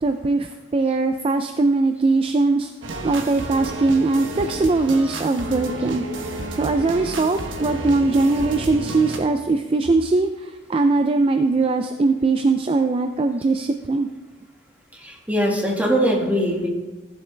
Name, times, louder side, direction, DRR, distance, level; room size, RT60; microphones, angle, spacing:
voice 1, 0.0-2.7 3.0-14.1, right 3 dB, 30° right, 7 dB, 0.3 m, -21 dB
sound 1, 2.8-9.2, right 2 dB, 90° right, 1.1 m, -31 dB
voice 2, 15.0-16.7, equal, 10° right, -2 dB, 1.7 m, -21 dB
15.0 x 7.3 x 3.3 m, 1.2 s
head